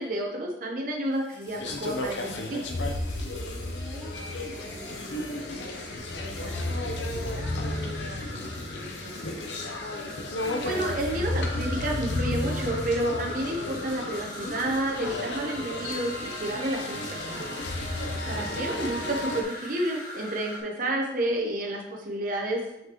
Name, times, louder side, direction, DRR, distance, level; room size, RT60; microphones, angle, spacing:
voice 1, 0.0-2.7 10.4-17.5 18.2-22.6, right 1 dB, 50° right, -1 dB, 0.9 m, -30 dB
sound 1, 1.1-20.6, left 1 dB, 50° left, 1.6 m, -42 dB
sound 2, 1.5-19.4, left 1 dB, 80° left, 0.7 m, -33 dB
voice 2, 3.4-9.4 18.1-18.7, left 1 dB, 15° right, -7 dB, 1.4 m, -47 dB
5.9 x 5.5 x 3.0 m, 0.88 s
head